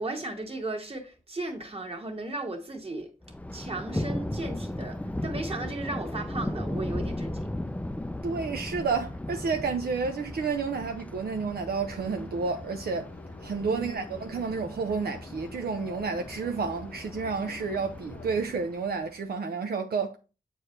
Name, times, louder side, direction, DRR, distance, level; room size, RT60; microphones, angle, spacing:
voice 1, 0.0-3.1 3.5-7.5 13.6-14.2, right 2 dB, 35° right, 1.8 m, -36 dB
Thunder, 3.2-19.2, left 1 dB, 10° left, 0.4 m, -37 dB
voice 2, 8.2-13.1 13.4-20.2, right 5 dB, 75° right, 0.6 m, -30 dB
sound 1, 11.8-18.6, left 3 dB, 60° left, 0.9 m, -46 dB
7.5 x 4.6 x 3.2 m
cardioid pair, 50°, 16 cm